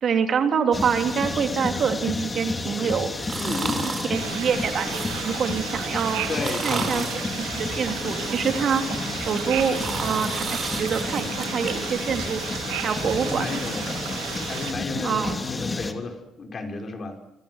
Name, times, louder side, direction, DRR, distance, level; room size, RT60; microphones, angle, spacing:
voice 1, 0.0-3.1 4.1-6.2 6.6-7.1 7.3-8.8 9.3-12.4 12.8-13.6 13.9-14.0 15.0-15.4, right 7 dB, 55° right, 6 dB, 3.2 m, -26 dB
sound 1, 0.7-15.9, left 3 dB, 25° left, 3.1 m, -31 dB
sound 2, 3.2-4.1 4.7-5.5 6.2-7.3 7.8-8.8 9.3-11.7 12.1-12.2, right 4 dB, 40° right, 4.8 m, -33 dB
voice 2, 3.4-3.9 6.3-7.1 13.0-13.9 14.4-17.2, left 3 dB, 45° left, 4 dB, 5.6 m, -32 dB
sound 3, 4.1-14.7, right 11 dB, 90° right, 3.1 m, -34 dB
25.5 x 24.5 x 8.1 m, 0.95 s
supercardioid pair, 65°, 0 cm